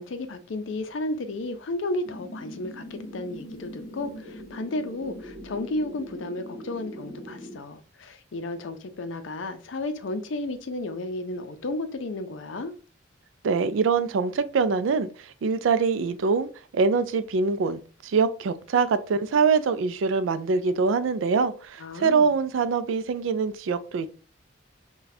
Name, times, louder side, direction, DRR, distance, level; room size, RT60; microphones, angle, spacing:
voice 1, 0.0-12.7 21.8-22.3, left 2 dB, 70° left, 0.5 m, -33 dB
sound 1, 2.0-7.6, equal, 45° left, 1.0 m, -41 dB
voice 2, 13.4-24.1, right 5 dB, 75° right, 0.4 m, -24 dB
4.0 x 2.2 x 2.6 m
head